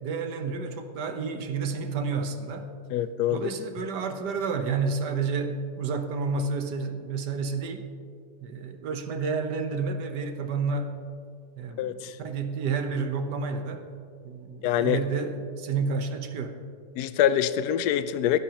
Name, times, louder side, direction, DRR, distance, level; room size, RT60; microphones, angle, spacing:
voice 1, 0.0-2.7 3.3-7.8 8.4-10.9 11.6-13.9 14.2-16.6, right 4 dB, 75° right, 6 dB, 1.6 m, -30 dB
voice 2, 2.9-3.5 11.8-12.2 14.6-15.0 17.0-18.4, left 10 dB, 75° left, 12 dB, 1.1 m, -25 dB
21.5 x 12.5 x 2.9 m, 2.3 s
omnidirectional pair, 1.8 m